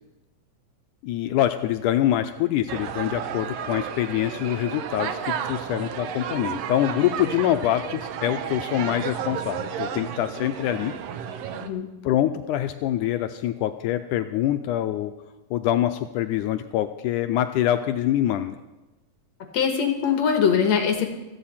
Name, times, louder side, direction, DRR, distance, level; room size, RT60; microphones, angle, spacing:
voice 1, 1.0-10.9 12.0-15.1 15.5-18.6, left 12 dB, 80° left, 9 dB, 1.9 m, -25 dB
sound 1, 2.7-11.7, right 8 dB, 90° right, 1.4 m, -32 dB
voice 2, 19.5-21.1, left 7 dB, 60° left, 5 dB, 2.2 m, -22 dB
15.5 x 14.5 x 4.3 m, 1.0 s
omnidirectional pair, 4.0 m